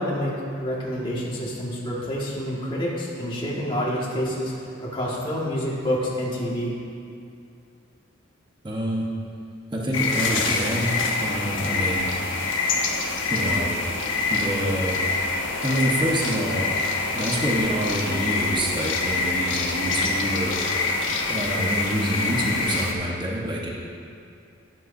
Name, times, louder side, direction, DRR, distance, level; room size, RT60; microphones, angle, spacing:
voice 1, 0.0-6.7, equal, 25° left, -6 dB, 1.9 m, -28 dB
voice 2, 8.6-9.1 9.7-10.9 11.2-12.1 13.3-13.8 14.3-15.0 15.6-16.7 17.1-20.6 21.3-23.7, equal, 25° right, -3 dB, 1.2 m, -26 dB
sound 1, 9.9-22.9, left 3 dB, 75° left, 1.1 m, -26 dB
13.0 x 11.0 x 2.7 m, 2.5 s
head